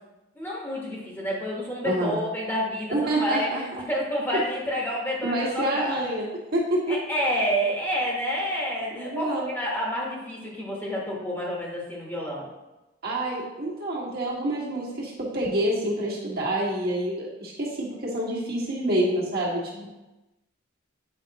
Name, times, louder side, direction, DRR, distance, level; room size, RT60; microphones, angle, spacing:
voice 1, 0.3-6.2 6.9-12.5 19.7-19.8, equal, 10° left, -4 dB, 1.2 m, -29 dB
voice 2, 1.8-2.2 2.9-3.8 5.2-7.0 8.9-9.5 13.0-19.8, right 1 dB, 50° right, -5 dB, 1.6 m, -27 dB
8.1 x 5.1 x 2.9 m, 1.0 s
head